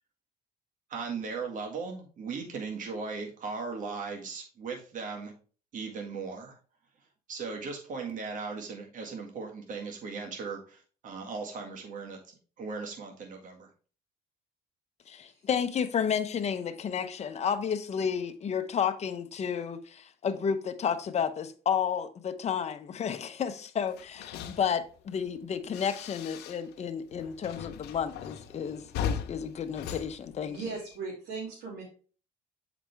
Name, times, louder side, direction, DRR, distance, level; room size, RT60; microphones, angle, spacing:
voice 1, 0.9-5.3 5.7-6.6 7.3-13.7, right 4 dB, 50° right, 1.8 m, -38 dB
voice 2, 15.1-30.6, left 7 dB, 40° left, 0.9 m, -31 dB
sound 1, 23.9-26.8 27.1-31.0, left 7 dB, 80° left, 0.8 m, -39 dB
voice 3, 30.4-31.8, right 4 dB, 85° right, 2.6 m, -38 dB
7.4 x 5.1 x 3.4 m
cardioid pair, 110°, 17 cm